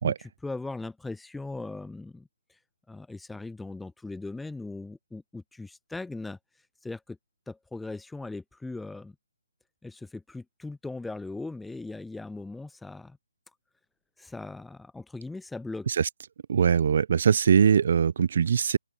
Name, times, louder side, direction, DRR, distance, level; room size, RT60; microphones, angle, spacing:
voice 1, 0.0-2.3 2.9-6.4 6.8-7.2 7.5-9.2 9.8-13.2 14.2-15.9, left 3 dB, 5° left, 2.0 m, -39 dB
voice 2, 16.5-18.8, right 7 dB, 40° right, 2.4 m, -22 dB
open air
figure-of-eight pair, 145°, 0 cm